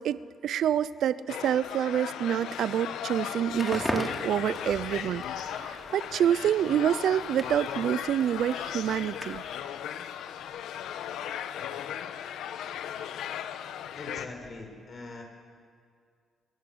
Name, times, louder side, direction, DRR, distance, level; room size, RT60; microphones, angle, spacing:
voice 1, 0.0-9.4, right 10 dB, 70° right, 18 dB, 0.6 m, -27 dB
sound 1, 1.3-14.3, left 10 dB, 80° left, 1.2 m, -37 dB
Crackle, 3.5-9.6, equal, 5° left, 4.2 m, -40 dB
Cheering / Applause, 4.1-10.4, left 1 dB, 25° left, 7.5 m, -52 dB
voice 2, 13.9-15.2, left 2 dB, 40° left, 2 dB, 7.4 m, -42 dB
29.5 x 23.5 x 8.0 m, 2.1 s
cardioid pair, 90°, 0 cm